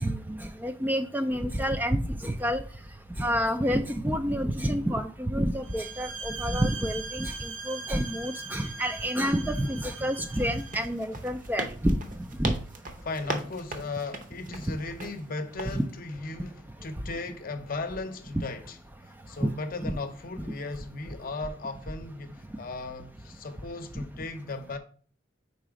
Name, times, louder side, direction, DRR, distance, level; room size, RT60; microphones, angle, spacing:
voice 1, 0.0-2.6 3.2-12.0 12.4-12.5 15.7-15.8 19.4-19.5 19.8-19.9, equal, 10° right, 0.3 m, -28 dB
sound 1, 5.6-10.9, right 4 dB, 75° right, 0.7 m, -40 dB
sound 2, 10.4-15.2 15.6-15.8, right 2 dB, 45° right, 0.8 m, -38 dB
voice 2, 13.0-18.8 19.3-24.8, left 3 dB, 50° left, 0.7 m, -36 dB
4.8 x 4.1 x 4.8 m
head